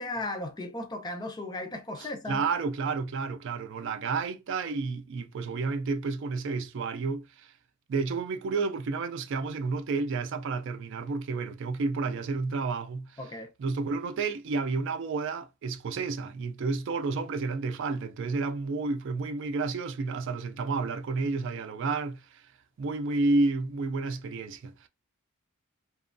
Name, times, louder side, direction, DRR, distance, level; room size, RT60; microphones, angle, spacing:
voice 1, 0.0-2.4 13.2-13.5, left 2 dB, 20° left, 0.4 m, -36 dB
voice 2, 2.3-7.5 7.9-13.1 13.6-22.4 22.8-24.9, right 3 dB, 60° right, 0.3 m, -31 dB
2.9 x 2.1 x 2.5 m
head